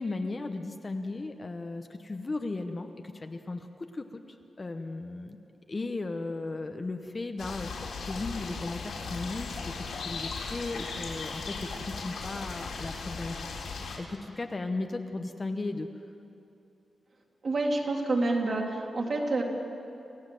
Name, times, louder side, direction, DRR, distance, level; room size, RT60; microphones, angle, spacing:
voice 1, 0.0-4.2 4.6-5.4 5.7-15.9, left 3 dB, 25° left, 6 dB, 0.9 m, -36 dB
sound 1, 7.4-14.0, left 4 dB, 85° left, 4.0 m, -37 dB
voice 2, 17.4-19.4, right 2 dB, 40° right, 0 dB, 3.0 m, -28 dB
28.0 x 16.5 x 7.6 m, 2.7 s
wide cardioid pair, 170°, 0 cm